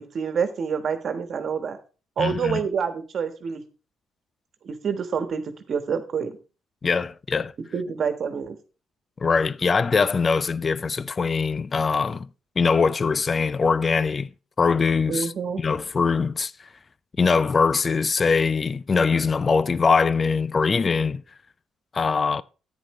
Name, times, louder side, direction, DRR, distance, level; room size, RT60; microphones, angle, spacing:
voice 1, 0.0-1.8 2.2-3.6 4.6-6.4 7.7-8.6 15.1-15.6, right 6 dB, 55° right, 1.3 m, -27 dB
voice 2, 2.2-2.6 6.8-7.5 9.2-12.3 12.6-14.3 14.6-15.3 15.6-16.7 17.2-21.2 21.9-22.4, left 5 dB, 35° left, 0.4 m, -22 dB
10.0 x 9.4 x 3.1 m
cardioid pair, 90°, 0 cm